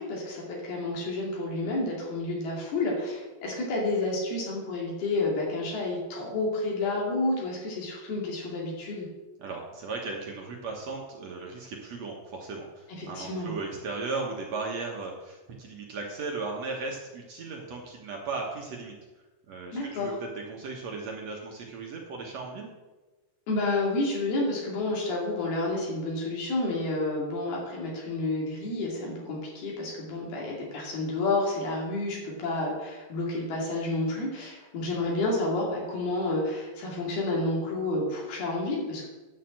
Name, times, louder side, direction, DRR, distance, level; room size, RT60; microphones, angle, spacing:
voice 1, 0.0-9.1 13.0-13.5 19.7-20.2 23.5-39.1, left 2 dB, 75° left, -3 dB, 4.4 m, -30 dB
voice 2, 9.4-18.9 19.5-22.7, right 3 dB, 60° right, 0 dB, 1.9 m, -36 dB
10.5 x 6.7 x 7.6 m, 1.2 s
omnidirectional pair, 4.5 m